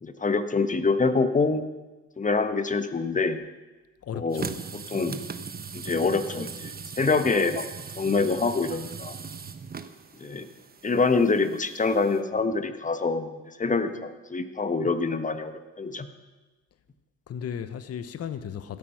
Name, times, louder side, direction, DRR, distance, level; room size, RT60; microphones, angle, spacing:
voice 1, 0.0-1.6 2.2-3.4 4.1-5.2 5.7-7.6 8.0-9.2 10.2-10.5 10.8-16.1, left 4 dB, 25° left, 9 dB, 1.3 m, -26 dB
voice 2, 4.0-4.5 17.3-18.8, left 8 dB, 55° left, 12 dB, 1.0 m, -35 dB
sound 1, 4.3-12.2, right 5 dB, 30° right, 1.0 m, -39 dB
17.0 x 12.5 x 5.9 m, 1.2 s
cardioid pair, 90°, 30 cm